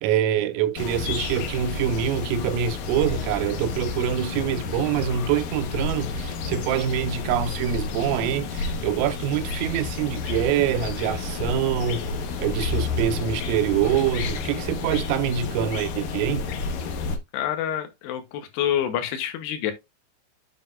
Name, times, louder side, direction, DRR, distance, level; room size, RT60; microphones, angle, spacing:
voice 1, 0.0-12.0 12.4-16.5, right 9 dB, 85° right, 3.5 m, -25 dB
sound 1, 0.8-17.2, left 4 dB, 90° left, 1.9 m, -30 dB
sound 2, 10.0-15.0, left 4 dB, 45° left, 3.3 m, -41 dB
voice 2, 17.3-19.7, left 10 dB, 75° left, 2.6 m, -27 dB
7.9 x 7.4 x 2.5 m
omnidirectional pair, 5.9 m